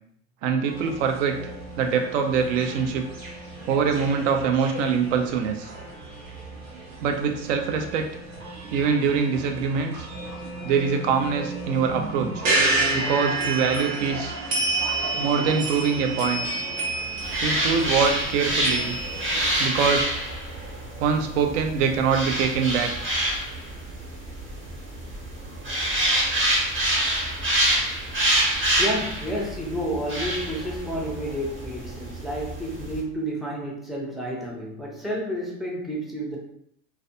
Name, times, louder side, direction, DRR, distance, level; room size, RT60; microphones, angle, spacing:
voice 1, 0.4-1.3 1.8-3.0 3.7-5.7 7.0-8.0 8.7-10.1 10.6-12.5 12.9-14.6 15.1-16.5 17.4-19.0 19.6-20.1 21.0-22.9, right 6 dB, 60° right, 4 dB, 0.6 m, -24 dB
sound 1, 0.7-19.5, right 2 dB, 80° right, 1.0 m, -31 dB
sound 2, 17.2-33.0, right 1 dB, 30° right, 0.9 m, -27 dB
voice 2, 28.8-36.4, equal, ahead, -3 dB, 0.5 m, -30 dB
2.4 x 2.2 x 2.6 m, 0.71 s
hypercardioid pair, 100°, 42 cm